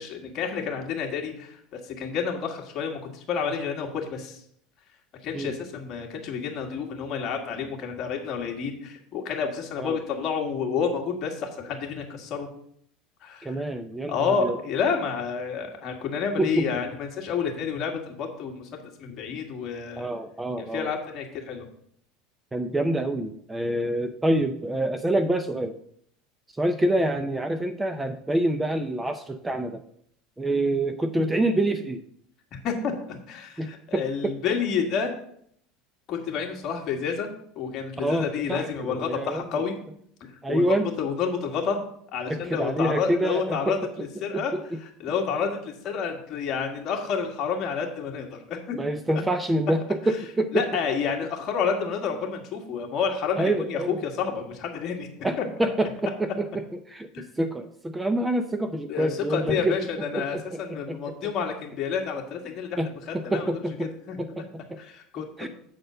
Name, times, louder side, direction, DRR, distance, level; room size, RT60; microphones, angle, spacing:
voice 1, 0.0-4.4 5.2-12.5 13.2-13.6 14.1-20.1 20.6-21.7 30.5-30.6 32.6-35.1 36.1-37.3 37.6-39.7 40.2-41.8 42.1-44.5 44.8-48.8 49.1-49.2 50.5-55.1 55.4-55.5 57.1-57.2 58.9-62.8 63.1-64.2 64.8-65.5, left 6 dB, 40° left, 1 dB, 1.8 m, -30 dB
voice 2, 13.4-14.6 16.4-16.7 20.0-20.9 22.5-25.7 26.6-29.8 30.4-32.0 33.6-34.3 38.0-39.6 40.4-40.9 42.3-43.8 44.3-44.4 44.7-44.8 48.7-50.7 53.4-54.0 55.2-59.7 60.1-61.1 62.8-64.8 65.4-65.5, right 1 dB, 10° right, 9 dB, 0.4 m, -27 dB
7.8 x 4.2 x 6.6 m, 0.67 s
supercardioid pair, 135°, 0 cm